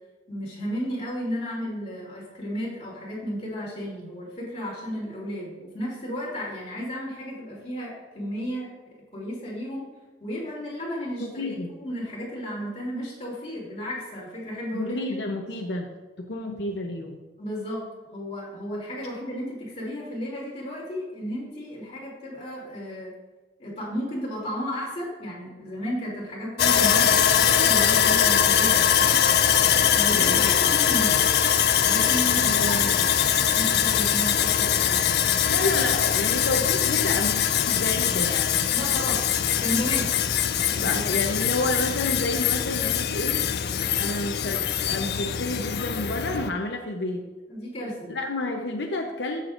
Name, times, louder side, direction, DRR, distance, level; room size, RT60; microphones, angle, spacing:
voice 1, 0.3-8.7 9.1-9.9 10.2-11.5 11.8-15.0 17.4-17.8 18.1-23.1 23.6-29.2 29.9-31.3 31.8-32.8 33.1-35.1 38.7-40.1 40.7-41.0 47.5-48.1, equal, 35° left, -5 dB, 3.0 m, -33 dB
voice 2, 11.2-11.7 14.7-15.9 16.3-17.2 30.1-30.5 32.3-32.9 35.5-37.4 37.7-38.7 40.8-43.4 44.0-47.2 48.1-49.4, left 2 dB, 85° left, 2 dB, 0.8 m, -30 dB
Sawing, 26.6-46.5, left 9 dB, 65° left, 0.4 m, -22 dB
13.5 x 6.8 x 2.6 m, 1.2 s
head